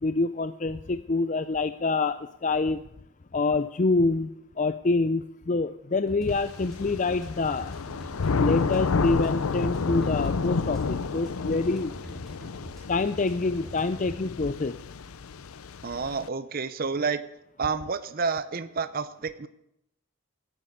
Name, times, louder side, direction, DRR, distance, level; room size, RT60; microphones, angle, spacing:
voice 1, 0.0-2.8 3.3-4.3 4.6-7.7 8.4-11.9 12.9-14.8, left 3 dB, 35° left, 11 dB, 0.5 m, -26 dB
sound 1, 6.1-14.1, right 1 dB, ahead, 3.9 m, -44 dB
Thunder / Rain, 6.3-16.3, left 4 dB, 85° left, 0.6 m, -30 dB
voice 2, 15.8-17.2 17.6-19.5, right 5 dB, 45° right, 13 dB, 0.6 m, -29 dB
13.5 x 10.0 x 8.6 m, 0.81 s
head